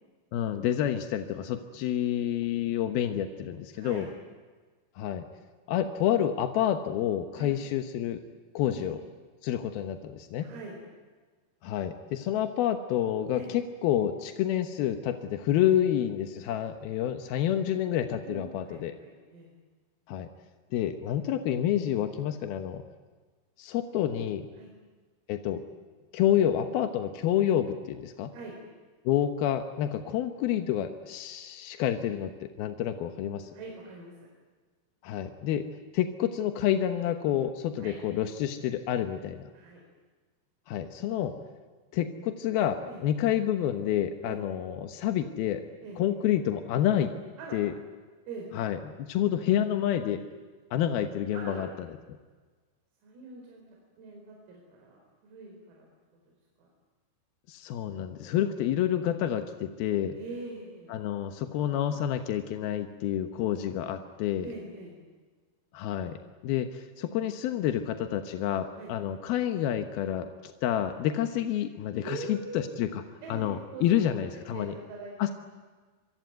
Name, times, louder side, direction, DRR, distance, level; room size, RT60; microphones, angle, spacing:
voice 1, 0.3-4.1 5.0-5.2 5.7-8.2 8.5-9.0 9.4-10.5 11.6-18.9 20.1-20.3 20.7-22.8 23.6-24.5 25.3-25.6 26.1-28.3 29.0-33.5 35.0-35.7 35.9-39.5 40.7-41.3 41.9-45.6 46.0-47.1 47.5-47.7 48.5-50.2 50.7-51.9 57.5-60.2 60.9-64.5 65.7-73.0 73.3-74.7 75.2-75.3, left 10 dB, 70° left, 7 dB, 2.3 m, -28 dB
voice 2, 3.7-4.1 7.3-7.5 8.7-8.9 10.4-10.8 13.3-13.6 18.3-19.5 24.6-24.7 28.3-28.6 33.5-34.3 37.8-38.0 39.5-39.8 42.9-43.0 44.3-44.4 45.8-46.0 47.4-47.6 48.3-48.5 51.3-51.7 53.0-53.6 54.0-55.9 56.6-56.7 58.0-58.6 60.1-61.0 64.4-65.0 68.8-68.9 72.0-72.9 73.2-75.3, right 3 dB, 85° right, 0 dB, 7.1 m, -43 dB
27.0 x 24.0 x 9.4 m, 1.4 s
omnidirectional pair, 5.9 m